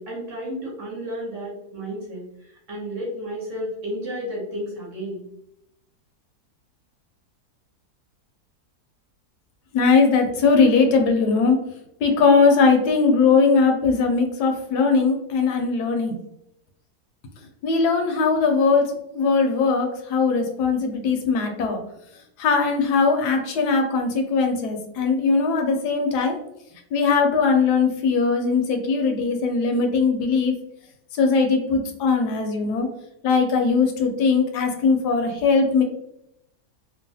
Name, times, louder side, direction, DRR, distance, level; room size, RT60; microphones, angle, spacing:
voice 1, 0.0-2.2 2.7-5.2, equal, 55° right, -3 dB, 1.2 m, -32 dB
voice 2, 9.7-11.6 12.0-16.1 17.6-18.8 19.1-21.8 22.4-26.4 26.9-30.5 31.2-32.9 33.2-35.8, left 4 dB, 80° left, 4 dB, 1.1 m, -20 dB
3.0 x 2.1 x 2.7 m, 0.80 s
omnidirectional pair, 1.7 m